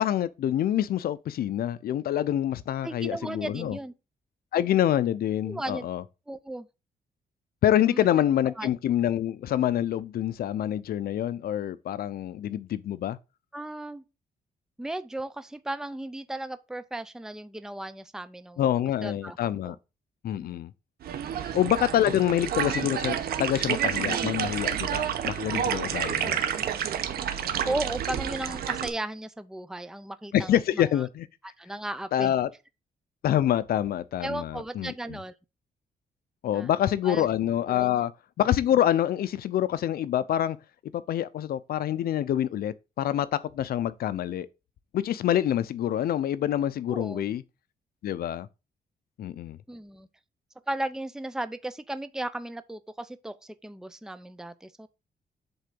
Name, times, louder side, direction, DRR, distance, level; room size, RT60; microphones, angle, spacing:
voice 1, 0.0-3.8 4.5-6.0 7.6-13.2 18.6-19.7 20.2-20.7 21.5-26.4 30.3-31.3 32.1-32.5 33.2-34.9 36.4-38.1 38.4-40.6 40.9-44.5 44.9-47.4 48.0-48.5 49.2-49.6, left 11 dB, 75° left, 0.6 m, -26 dB
voice 2, 2.8-3.9 5.4-5.9 6.3-6.7 7.9-8.1 8.5-8.7 13.5-14.0 14.8-18.7 19.0-19.4 19.6-19.8 20.3-20.6 27.7-31.1 31.6-32.4 34.2-35.3 36.5-36.7 37.0-37.3 37.7-38.0 46.9-47.3 49.7-50.1 50.7-54.9, right 1 dB, 5° right, 0.6 m, -35 dB
sound 1, 21.0-28.9, right 9 dB, 85° right, 1.1 m, -29 dB
8.1 x 3.8 x 6.8 m
cardioid pair, 125°, 15 cm